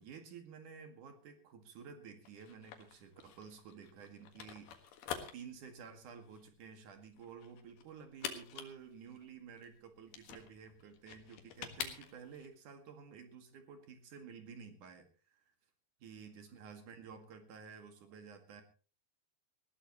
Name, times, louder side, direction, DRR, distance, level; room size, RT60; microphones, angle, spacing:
voice 1, 0.0-4.7 5.3-15.5 16.0-18.6, right 6 dB, 60° right, 6 dB, 3.2 m, -52 dB
sound 1, 2.3-12.5, left 8 dB, 80° left, 3.6 m, -47 dB
20.0 x 16.0 x 3.1 m, 0.35 s
omnidirectional pair, 4.4 m